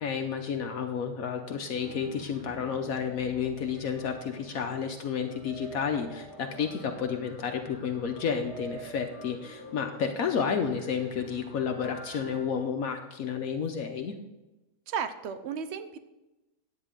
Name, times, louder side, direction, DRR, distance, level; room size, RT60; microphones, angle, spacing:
voice 1, 0.0-14.1, left 6 dB, 70° left, 4 dB, 1.2 m, -31 dB
sound 1, 1.8-12.4, right 1 dB, 35° right, 3.9 m, -48 dB
voice 2, 14.9-16.0, right 7 dB, 55° right, 10 dB, 0.9 m, -34 dB
10.5 x 8.9 x 3.7 m, 1.0 s
omnidirectional pair, 1.6 m